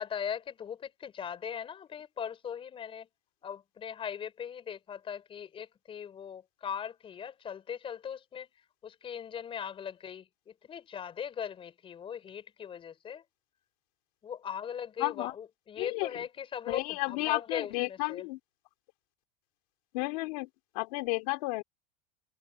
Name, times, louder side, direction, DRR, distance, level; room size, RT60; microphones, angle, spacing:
voice 1, 0.0-3.1 3.4-8.5 8.8-13.2 14.2-18.3, left 8 dB, 25° left, 5.1 m, -39 dB
voice 2, 15.0-15.3 15.8-16.1 16.7-18.4 19.9-20.5 20.8-21.6, left 25 dB, 65° left, 2.5 m, -32 dB
supercardioid pair, 130°, 20 cm